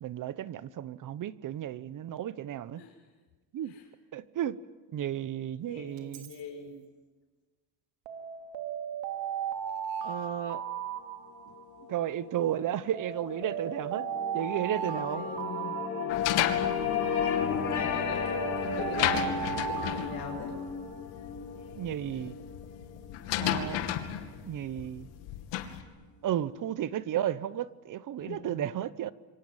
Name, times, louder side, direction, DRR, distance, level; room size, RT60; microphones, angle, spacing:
voice 1, 0.0-2.8 3.5-3.7 4.1-4.6 4.9-6.3 10.0-10.6 11.9-14.1 14.3-15.3 21.8-22.4 23.4-23.8 24.4-25.1 26.2-29.1, right 11 dB, 45° right, 16 dB, 1.1 m, -33 dB
voice 2, 5.7-6.8 15.0-15.9 16.8-17.5 17.8-20.5 28.2-28.6, left 5 dB, 65° left, 1 dB, 5.6 m, -41 dB
Alarm, 6.0-6.3 8.1-11.8 12.9-16.7 17.8-21.0, right 8 dB, 75° right, 3.2 m, -36 dB
sound 1, 11.6-24.2, left 7 dB, 45° left, 4.4 m, -34 dB
sound 2, 16.1-25.8, left 12 dB, 85° left, 2.7 m, -34 dB
27.0 x 24.0 x 9.1 m, 1.3 s
cardioid pair, 125°, 43 cm